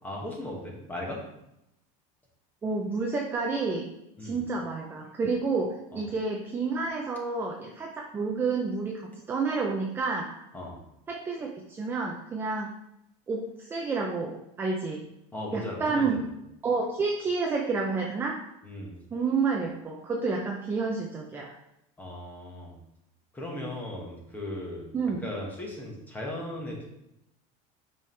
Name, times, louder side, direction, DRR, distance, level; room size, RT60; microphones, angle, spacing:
voice 1, 0.0-1.2 4.2-4.4 5.9-6.0 10.5-10.8 15.3-16.2 18.6-19.0 22.0-22.8 23.3-24.9 25.2-26.9, left 1 dB, 10° left, -1 dB, 1.4 m, -37 dB
voice 2, 2.6-3.9 4.2-10.3 11.1-12.7 13.3-15.0 15.5-16.2 16.6-18.4 19.1-21.5 24.9-25.3, right 4 dB, 10° right, 0 dB, 0.5 m, -29 dB
8.5 x 5.5 x 3.3 m, 0.84 s
cardioid pair, 175°, 17 cm